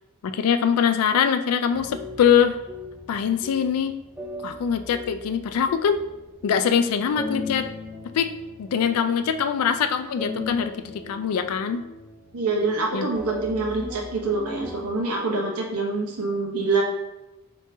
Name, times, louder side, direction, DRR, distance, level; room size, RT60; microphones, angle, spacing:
voice 1, 0.2-2.6 3.1-4.0 4.4-6.0 6.4-7.7 8.1-8.3 8.6-10.7 11.1-11.8 12.9-13.1, left 7 dB, 75° left, 9 dB, 0.3 m, -22 dB
sound 1, 1.7-14.9, left 2 dB, 5° right, 0.3 m, -38 dB
voice 2, 12.3-16.8, right 3 dB, 85° right, -1 dB, 0.8 m, -25 dB
3.9 x 3.6 x 2.7 m, 1.0 s
head